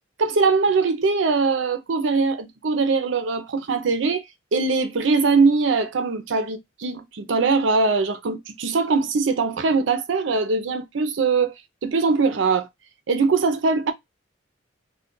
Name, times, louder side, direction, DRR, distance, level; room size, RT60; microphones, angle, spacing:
voice 1, 0.2-4.2 4.5-11.5 11.8-12.7 13.1-13.9, right 4 dB, 75° right, 0.5 m, -21 dB
2.3 x 2.2 x 3.6 m
head